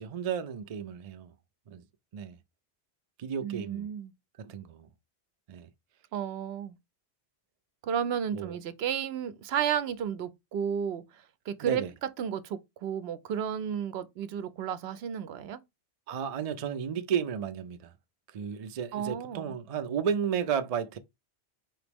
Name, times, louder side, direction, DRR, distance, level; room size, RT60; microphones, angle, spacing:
voice 1, 0.0-1.3 1.7-1.8 2.1-2.4 3.2-3.9 4.4-4.9 5.5-5.7 8.3-8.6 11.6-11.9 16.1-17.9 18.3-21.0, right 7 dB, 50° right, 0.4 m, -33 dB
voice 2, 3.4-4.1 6.1-6.8 7.8-11.8 12.2-15.6 18.9-19.5, right 8 dB, 70° right, 0.8 m, -33 dB
4.7 x 3.0 x 3.4 m
omnidirectional pair, 1.1 m